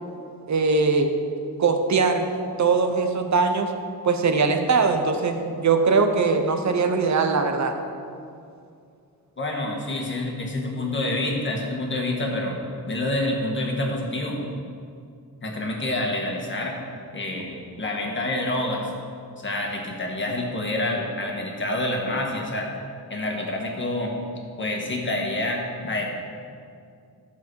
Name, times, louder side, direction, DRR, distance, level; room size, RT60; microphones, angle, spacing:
voice 1, 0.5-1.1 1.6-2.3 2.6-3.7 4.0-7.7, right 4 dB, 45° right, 6 dB, 0.9 m, -21 dB
voice 2, 9.4-12.6 12.9-14.4 15.4-16.7 17.1-18.9 19.4-22.7 23.1-24.1 24.6-26.1, left 1 dB, 30° left, 0 dB, 1.6 m, -27 dB
14.5 x 7.1 x 4.7 m, 2.4 s
wide cardioid pair, 165°, 38 cm